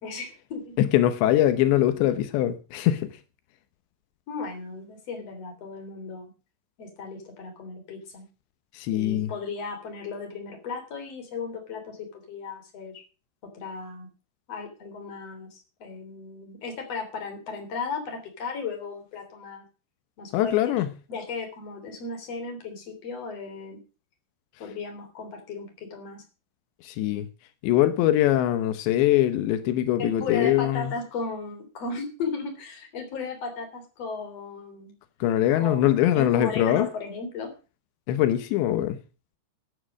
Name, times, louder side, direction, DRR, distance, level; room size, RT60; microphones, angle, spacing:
voice 1, 0.0-0.7 4.3-6.3 6.8-8.3 8.9-13.0 13.4-14.1 14.5-19.6 20.2-20.7 21.1-23.8 24.6-26.2 30.0-34.9 35.6-37.5, left 4 dB, 40° left, 4 dB, 4.2 m, -35 dB
voice 2, 0.8-3.1 8.8-9.3 20.3-20.9 26.8-27.3 27.6-30.9 35.2-36.9 38.1-39.0, left 12 dB, 85° left, 10 dB, 3.3 m, -22 dB
13.0 x 9.6 x 6.3 m, 0.34 s
omnidirectional pair, 5.0 m